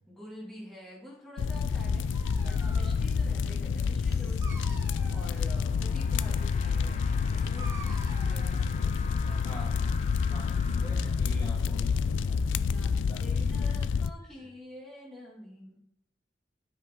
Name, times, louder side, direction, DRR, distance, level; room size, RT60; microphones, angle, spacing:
voice 1, 0.1-8.9 9.2-9.9 12.7-15.8, left 1 dB, ahead, -6 dB, 2.2 m, -48 dB
sound 1, 1.4-14.1, left 5 dB, 90° left, 0.3 m, -28 dB
Dog, 1.9-9.6, right 2 dB, 15° right, 1.0 m, -50 dB
sound 2, 4.9-11.9, left 4 dB, 35° left, 0.7 m, -47 dB
voice 2, 10.3-12.7 13.1-13.2 13.5-13.8, equal, 20° left, -4 dB, 1.3 m, -45 dB
10.5 x 5.3 x 3.7 m, 0.78 s
head